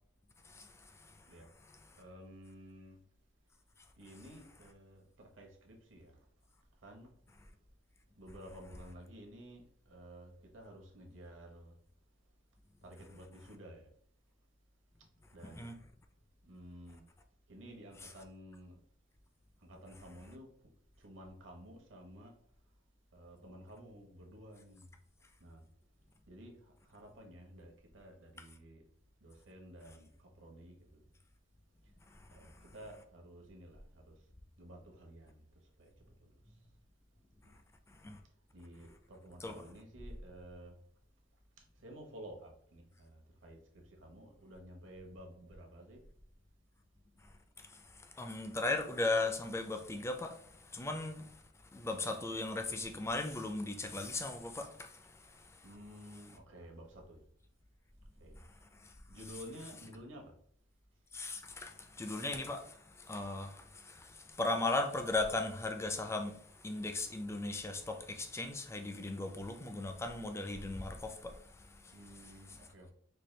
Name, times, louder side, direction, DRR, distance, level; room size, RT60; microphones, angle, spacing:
voice 1, 0.4-1.3 1.9-2.0 15.6-15.8 32.1-32.6 37.9-38.2 39.4-39.6 47.2-51.4 51.7-55.7 58.4-58.5 58.7-58.9 61.1-72.0, left 2 dB, 15° left, 0.3 m, -38 dB
voice 2, 2.0-3.0 4.0-6.2 6.8-7.1 8.1-11.7 12.8-13.9 15.3-15.7 16.4-17.0 17.5-18.8 19.6-20.5 21.0-22.3 23.1-24.9 25.4-25.6 26.3-28.8 29.2-31.0 32.3-34.2 34.6-35.4 35.8-36.6 37.4-37.5 38.5-40.7 41.6-46.0 55.6-57.2 58.2-58.5 59.1-60.3 71.9-72.9, equal, 70° right, 0.9 m, -53 dB
4.4 x 2.2 x 3.1 m
head